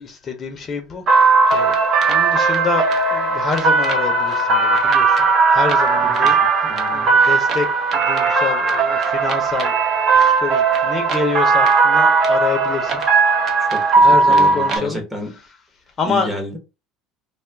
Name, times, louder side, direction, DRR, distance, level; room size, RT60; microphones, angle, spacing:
voice 1, 0.0-6.7 6.9-9.8 10.2-13.0 14.0-15.0 15.3-15.6 16.0-16.3, left 5 dB, 30° left, 0.6 m, -27 dB
sound 1, 1.1-14.8, right 4 dB, 40° right, 0.8 m, -17 dB
voice 2, 6.7-7.1 13.6-15.3 16.1-16.6, equal, 10° right, 0.9 m, -30 dB
2.5 x 2.3 x 3.4 m
cardioid pair, 125°, 0 cm